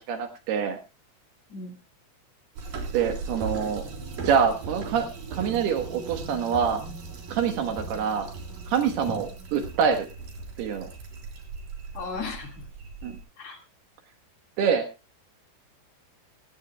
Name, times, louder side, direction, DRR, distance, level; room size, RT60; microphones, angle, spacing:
voice 1, 0.1-0.8 2.9-3.8 4.2-6.8 7.3-8.3 8.7-10.1 10.6-10.9 13.0-13.1 14.6-14.9, right 7 dB, 65° right, 7 dB, 2.9 m, -25 dB
sound 1, 2.6-13.2, right 4 dB, 50° right, 5.1 m, -38 dB
voice 2, 11.9-12.5 13.4-13.6, left 4 dB, 45° left, 5 dB, 2.4 m, -35 dB
17.5 x 16.5 x 2.3 m, 0.30 s
omnidirectional pair, 5.5 m